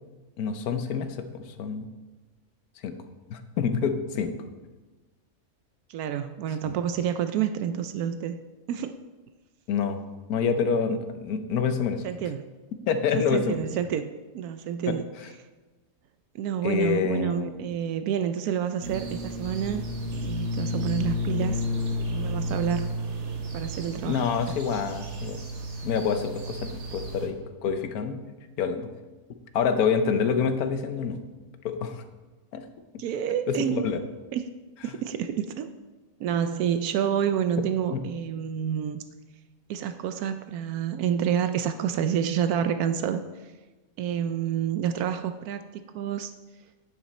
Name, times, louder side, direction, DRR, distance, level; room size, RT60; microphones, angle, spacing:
voice 1, 0.4-1.9 2.8-2.9 3.3-4.3 9.7-10.0 10.3-12.0 12.9-13.6 14.9-15.0 16.6-17.7 24.1-25.4 25.8-28.2 28.6-28.9 29.5-31.2 31.6-32.0 32.5-32.6 33.5-34.0 37.9-38.0, left 6 dB, 80° left, 8 dB, 1.3 m, -27 dB
voice 2, 5.9-8.4 8.7-9.0 12.0-12.4 13.1-15.0 16.3-19.8 20.1-21.6 22.1-22.9 23.5-24.3 33.0-33.9 34.3-34.4 34.8-35.7 36.2-39.0 39.7-43.5 44.0-46.3, right 9 dB, 80° right, 9 dB, 1.1 m, -28 dB
sound 1, 18.8-27.3, left 1 dB, 55° right, 1.4 m, -32 dB
9.2 x 8.9 x 4.2 m, 1.2 s
omnidirectional pair, 1.6 m